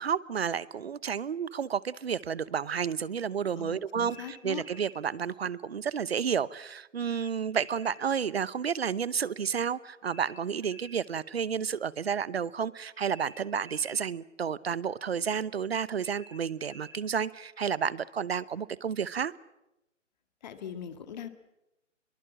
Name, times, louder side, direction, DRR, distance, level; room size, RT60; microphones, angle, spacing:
voice 1, 0.0-19.3, right 7 dB, 55° right, 20 dB, 0.9 m, -31 dB
voice 2, 3.6-4.6 20.4-21.3, left 8 dB, 35° left, 9 dB, 1.9 m, -40 dB
sound 1, 4.0-5.0 7.0-8.0 10.0-11.0 13.0-14.0 16.0-17.0, right 1 dB, 10° right, 1.7 m, -51 dB
24.0 x 23.0 x 7.4 m, 0.92 s
figure-of-eight pair, 145°, 37 cm